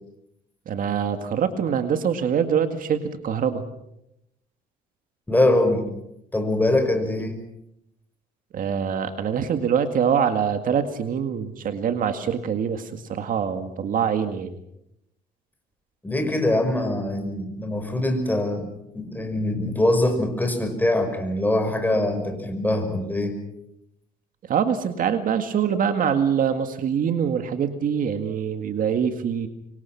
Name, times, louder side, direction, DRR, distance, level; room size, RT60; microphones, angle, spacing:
voice 1, 0.7-3.6 8.5-14.6 24.5-29.5, right 7 dB, 55° right, 8 dB, 2.0 m, -24 dB
voice 2, 5.3-5.9 6.3-7.4 16.0-18.7 18.9-23.4, left 1 dB, 10° left, 6 dB, 5.6 m, -23 dB
26.0 x 24.0 x 5.9 m, 0.81 s
cardioid pair, 110°, 17 cm